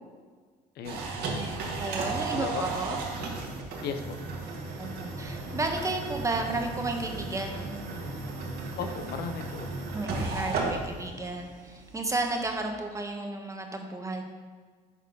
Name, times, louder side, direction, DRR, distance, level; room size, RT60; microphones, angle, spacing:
voice 1, 0.8-1.4 2.3-2.6 2.9-3.0 3.8-4.2 4.9-5.0 8.8-9.6, left 6 dB, 70° left, 7 dB, 0.8 m, -36 dB
sound 1, 0.8-12.6, right 3 dB, 75° right, 1.7 m, -35 dB
voice 2, 1.8-3.0 4.8-7.8 9.9-14.2, right 2 dB, 20° right, 3 dB, 1.1 m, -33 dB
9.8 x 4.4 x 5.3 m, 1.5 s
cardioid pair, 110°, 17 cm